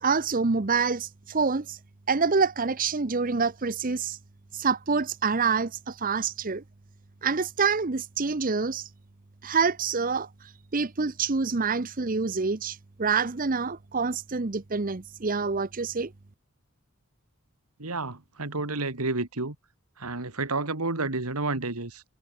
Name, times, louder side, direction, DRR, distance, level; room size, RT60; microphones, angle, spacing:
voice 1, 0.0-1.8 2.1-4.2 4.5-6.6 7.2-8.9 9.4-10.3 10.7-16.1, right 5 dB, 40° right, 0.8 m, -26 dB
voice 2, 17.8-19.6 20.0-22.0, right 3 dB, 90° right, 2.5 m, -30 dB
head